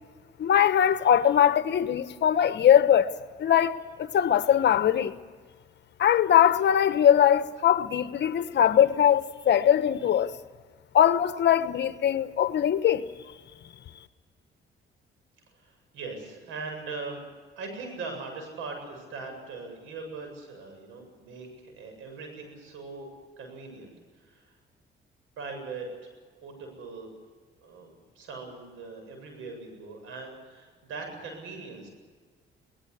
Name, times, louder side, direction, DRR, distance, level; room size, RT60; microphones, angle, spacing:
voice 1, 0.4-3.1 3.4-5.1 6.0-10.3 10.9-13.1, left 9 dB, 60° left, 1.3 m, -21 dB
voice 2, 15.5-17.2 17.6-23.1 23.4-24.5 25.4-26.1 26.4-27.1 27.6-31.9, right 4 dB, 90° right, 7.9 m, -40 dB
22.5 x 19.5 x 8.2 m
cardioid pair, 90°, 20 cm